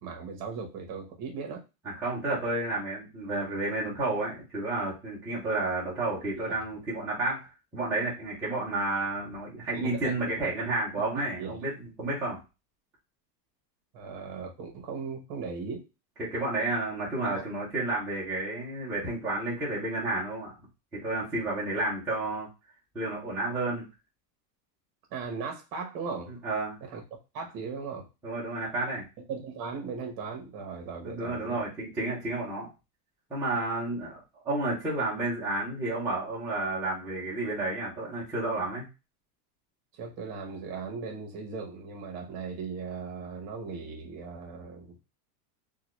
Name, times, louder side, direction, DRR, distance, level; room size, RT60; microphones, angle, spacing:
voice 1, 0.0-1.6 6.3-6.5 9.7-10.3 11.1-11.6 13.9-15.9 17.3-17.4 25.1-26.3 26.8-27.0 27.3-28.1 29.3-31.6 39.9-45.0, right 5 dB, 40° right, 2 dB, 1.1 m, -38 dB
voice 2, 1.9-11.7 12.0-12.4 16.2-20.5 20.9-22.5 22.9-23.9 26.4-26.8 28.2-29.0 31.0-32.7 33.3-38.8, right 2 dB, 5° right, -10 dB, 0.4 m, -31 dB
3.8 x 2.3 x 3.0 m, 0.27 s
supercardioid pair, 160°, 50 cm